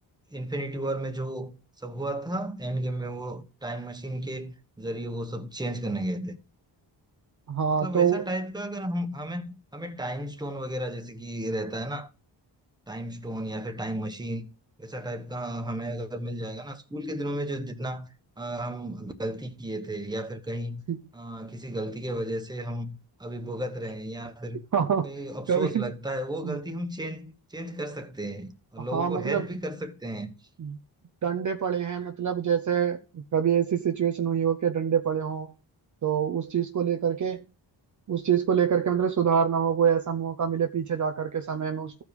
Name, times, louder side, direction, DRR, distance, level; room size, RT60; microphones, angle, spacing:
voice 1, 0.3-6.4 7.7-12.1 12.9-14.5 14.8-18.1 18.4-20.8 21.1-24.6 25.0-30.3, right 1 dB, 10° right, 1.1 m, -33 dB
voice 2, 7.5-8.2 20.9-21.0 24.7-25.1 25.5-25.8 26.4-26.6 28.9-29.5 30.6-30.8 31.2-35.5 36.0-37.4 38.1-42.0, right 8 dB, 40° right, 0.6 m, -25 dB
14.0 x 4.9 x 5.3 m
wide cardioid pair, 120°, 44 cm